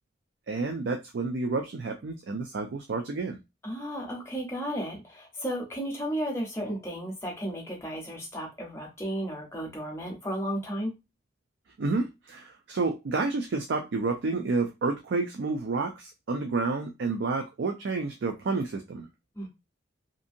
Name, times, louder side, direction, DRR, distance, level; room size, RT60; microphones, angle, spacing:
voice 1, 0.5-3.4 11.8-19.1, right 3 dB, 70° right, 4 dB, 0.4 m, -30 dB
voice 2, 3.6-10.9 19.3-19.5, equal, 15° left, -1 dB, 0.8 m, -34 dB
2.6 x 2.6 x 2.5 m, 0.24 s
head